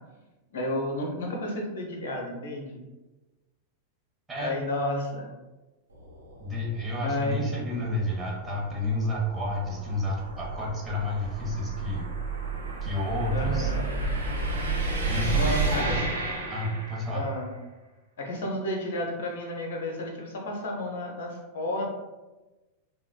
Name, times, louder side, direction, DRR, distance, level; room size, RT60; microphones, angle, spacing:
voice 1, 0.5-2.8 4.4-5.3 7.0-7.4 13.3-13.9 15.3-16.0 17.1-17.5 18.2-21.9, left 1 dB, 60° left, 0 dB, 0.6 m, -31 dB
sound 1, 5.9-17.3, right 3 dB, 75° right, 0.8 m, -32 dB
voice 2, 6.4-12.1 12.8-13.7 15.1-16.0 16.5-17.3, left 1 dB, 10° right, -4 dB, 1.0 m, -30 dB
5.6 x 2.2 x 2.2 m, 1.1 s
figure-of-eight pair, 90°, 0 cm